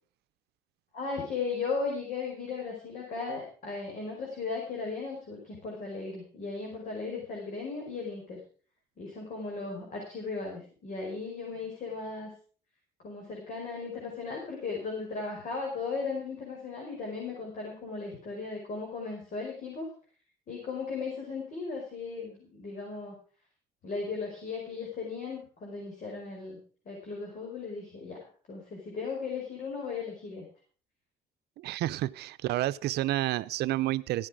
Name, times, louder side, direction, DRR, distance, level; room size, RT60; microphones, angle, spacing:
voice 1, 0.9-8.4 9.0-12.3 13.0-19.9 20.5-23.2 23.8-26.6 26.9-30.5, left 4 dB, 50° left, 0 dB, 5.1 m, -36 dB
voice 2, 31.6-34.3, right 15 dB, 75° right, 16 dB, 0.7 m, -30 dB
15.0 x 10.0 x 4.9 m, 0.41 s
cardioid pair, 110°, 17 cm